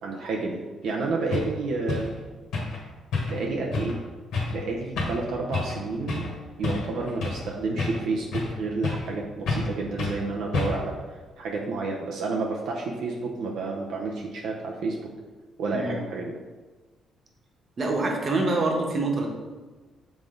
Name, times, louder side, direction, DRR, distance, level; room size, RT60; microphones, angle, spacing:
voice 1, 0.0-2.1 3.3-4.0 4.5-6.3 6.6-15.1 15.6-16.3, right 3 dB, 75° right, -1 dB, 0.7 m, -30 dB
sound 1, 0.9-1.0 1.3-1.5 1.9-2.1 2.5-2.8 3.1-3.4 3.7-3.9 4.3-4.6 5.0-5.2 5.5-5.8 6.1-6.3 6.6-7.5 7.8-8.6 8.8-9.1 9.5-9.7 10.0-10.2 10.5-10.9, left 3 dB, 80° left, 1.5 m, -29 dB
voice 2, 17.8-19.3, right 2 dB, 45° right, 1 dB, 1.2 m, -25 dB
7.1 x 3.6 x 3.8 m, 1.3 s
cardioid pair, 90°, 0 cm